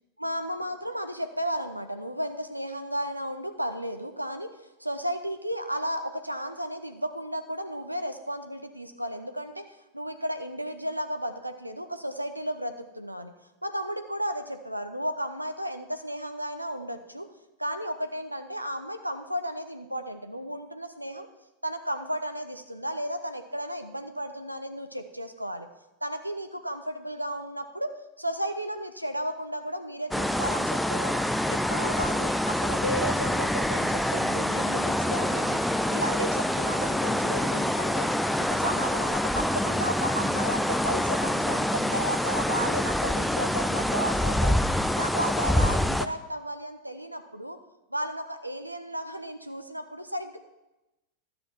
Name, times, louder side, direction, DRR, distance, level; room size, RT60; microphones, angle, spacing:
voice 1, 0.2-4.5 4.8-13.3 13.6-17.3 17.6-21.3 21.6-25.7 26.0-27.9 28.2-31.2 31.5-35.6 35.9-38.1 38.4-44.6 45.0-47.6 47.9-50.4, equal, 90° right, 8 dB, 0.5 m, -33 dB
sound 1, 30.1-46.1, left 1 dB, ahead, 0.4 m, -26 dB
12.0 x 7.7 x 4.4 m, 0.98 s
figure-of-eight pair, 90°, 0 cm